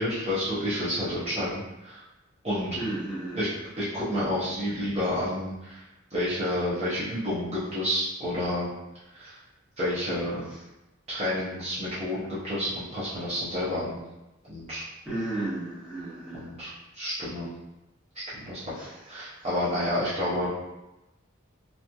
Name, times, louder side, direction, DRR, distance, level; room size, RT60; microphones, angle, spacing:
voice 1, 0.0-2.0 2.4-2.8 3.4-3.5 3.8-5.8 6.1-8.7 9.1-9.4 9.8-10.4 11.1-14.0 14.5-14.8 16.3-17.5 18.3-18.6 19.1-20.5, left 1 dB, 30° right, -11 dB, 0.8 m, -29 dB
voice 2, 2.7-3.4 10.4-10.6 15.0-16.5 18.7-19.1, right 2 dB, 5° right, -10 dB, 1.0 m, -34 dB
3.0 x 2.6 x 2.3 m, 0.94 s
head